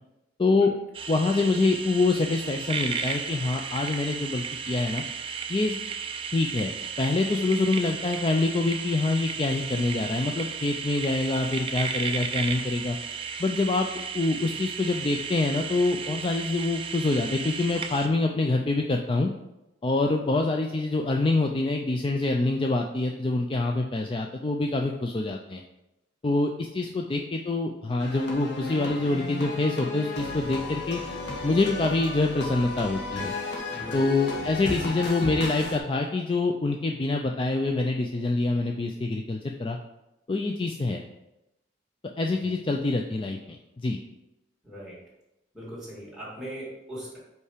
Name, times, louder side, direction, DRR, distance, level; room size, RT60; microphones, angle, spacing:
voice 1, 0.4-0.7 1.1-5.0 5.5-5.8 6.3-13.0 13.4-13.9 14.1-19.3 19.8-25.6 26.2-31.0 31.4-33.3 33.9-39.8 40.3-41.0 42.2-44.0, left 2 dB, 30° left, 2 dB, 0.4 m, -26 dB
sound 1, 0.9-18.1, right 6 dB, 30° right, 0.5 m, -34 dB
sound 2, 28.0-35.8, left 3 dB, 65° left, 1.4 m, -34 dB
voice 2, 33.7-34.0 42.3-42.5 44.6-45.0 45.5-47.2, equal, 5° right, -8 dB, 2.5 m, -40 dB
5.4 x 4.7 x 4.9 m, 0.93 s
head